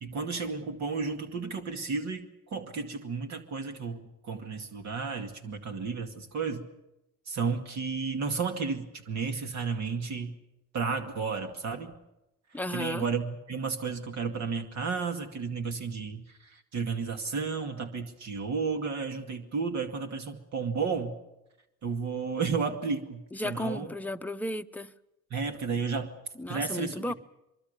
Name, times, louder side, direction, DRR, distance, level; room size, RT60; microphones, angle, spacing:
voice 1, 0.0-6.7 7.3-10.4 10.7-11.9 12.7-21.2 21.8-23.9 25.3-26.1 26.5-27.0, right 5 dB, 65° right, 2.3 m, -32 dB
voice 2, 12.5-13.0 23.3-24.9 26.4-27.1, left 1 dB, 5° left, 0.8 m, -34 dB
23.5 x 23.0 x 6.8 m
cardioid pair, 90°, 30 cm